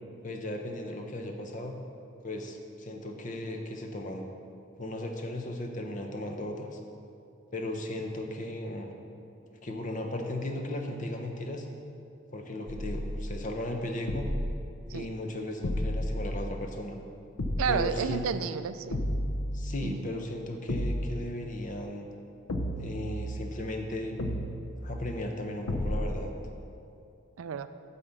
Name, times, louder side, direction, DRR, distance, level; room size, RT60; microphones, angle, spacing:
voice 1, 0.2-1.8 2.2-4.2 4.8-6.8 7.5-8.9 9.6-11.7 12.3-14.3 14.9-17.0 17.7-18.3 19.5-22.1 22.8-24.2 24.8-26.3, left 1 dB, 35° left, 3 dB, 0.7 m, -36 dB
sound 1, 12.7-13.4 14.1-14.7 15.6-16.7 17.4-18.0 18.9-20.0 20.7-21.3 22.5-23.6 24.2-24.8 25.7-26.3, equal, 75° left, 0.7 m, -32 dB
voice 2, 17.6-19.0 19.8-20.1 27.4-27.7, right 6 dB, 80° right, 11 dB, 0.4 m, -31 dB
8.7 x 4.3 x 6.9 m, 2.6 s
head